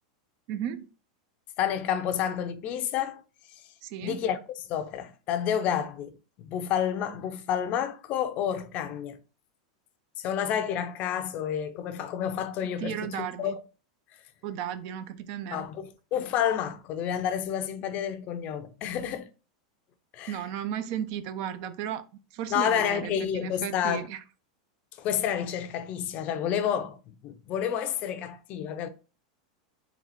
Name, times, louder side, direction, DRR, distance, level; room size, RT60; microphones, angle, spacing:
voice 1, 0.5-0.9 3.8-4.2 12.8-13.6 14.4-15.7 20.3-22.0 22.3-24.2, right 9 dB, 50° right, 0.4 m, -34 dB
voice 2, 1.6-3.2 3.5-3.6 4.0-6.1 6.4-9.2 10.2-13.6 15.5-19.3 20.1-20.4 22.5-24.1 25.0-28.9, left 9 dB, 40° left, 0.5 m, -30 dB
4.0 x 2.4 x 4.1 m
supercardioid pair, 135°, 4 cm